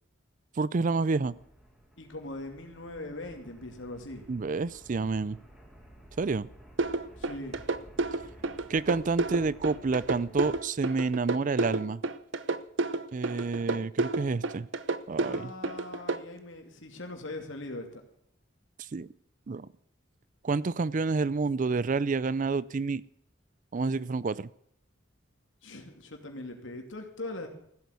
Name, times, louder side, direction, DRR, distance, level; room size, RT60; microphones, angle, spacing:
voice 1, 0.6-1.4 4.3-5.4 6.2-6.5 8.7-12.0 13.1-14.7 15.1-15.5 18.9-19.1 19.5-19.7 20.4-23.0 23.7-24.5, right 4 dB, 40° right, 19 dB, 0.4 m, -29 dB
sound 1, 1.1-10.6, right 1 dB, 5° right, 3.9 m, -53 dB
voice 2, 2.0-4.3 7.2-7.6 15.2-18.0 25.6-27.5, left 2 dB, 75° left, 4 dB, 2.8 m, -41 dB
sound 2, 6.8-16.2, right 3 dB, 70° right, 0.8 m, -30 dB
15.5 x 8.2 x 8.3 m, 0.73 s
head